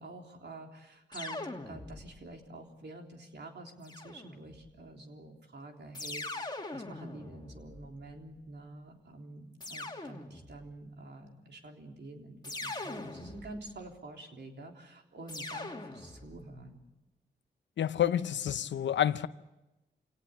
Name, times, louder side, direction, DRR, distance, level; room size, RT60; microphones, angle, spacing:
voice 1, 0.0-16.9, right 2 dB, 65° right, 3.6 m, -48 dB
sound 1, 1.1-2.3 3.8-4.7 5.9-8.3 9.6-10.7 12.4-13.8 15.3-16.5, left 2 dB, 25° left, 2.4 m, -42 dB
voice 2, 17.8-19.3, left 10 dB, 85° left, 0.7 m, -29 dB
26.0 x 18.0 x 8.4 m
cardioid pair, 50°, 19 cm